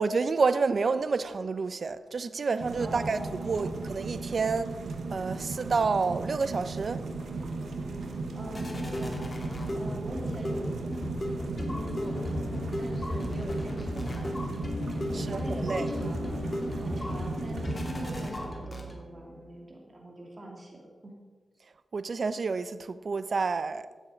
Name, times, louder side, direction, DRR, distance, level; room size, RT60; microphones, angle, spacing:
voice 1, 0.0-4.7 5.1-7.0 15.1-15.8 21.9-23.9, right 4 dB, 65° right, 0.6 m, -29 dB
sound 1, 2.6-18.3, right 4 dB, 85° right, 1.2 m, -36 dB
voice 2, 2.8-3.9 8.3-9.3 9.7-10.8 11.5-12.2 12.8-14.3 15.1-16.3 16.7-21.1, right 1 dB, 45° right, 2.8 m, -42 dB
sound 2, 6.7-19.3, left 1 dB, 30° left, 2.3 m, -35 dB
15.0 x 7.4 x 5.2 m
cardioid pair, 60°, 0 cm